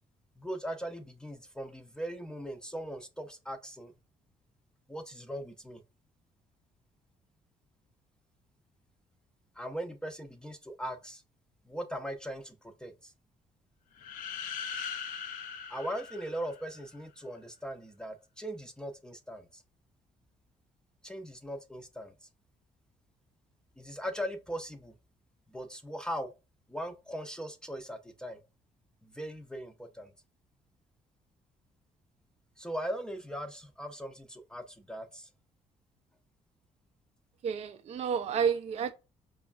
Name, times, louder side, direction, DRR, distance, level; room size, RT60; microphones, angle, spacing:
voice 1, 0.4-3.9 4.9-5.8 9.6-11.2 11.6-13.1 15.7-19.6 21.0-22.1 23.8-25.0 25.5-26.3 26.7-28.4 29.0-30.1 32.6-35.3, equal, 5° left, 0.6 m, -39 dB
sound 1, 14.0-16.9, left 7 dB, 75° left, 0.5 m, -40 dB
voice 2, 37.4-38.9, right 7 dB, 50° right, 0.4 m, -30 dB
4.9 x 2.3 x 2.4 m
supercardioid pair, 75°, 14 cm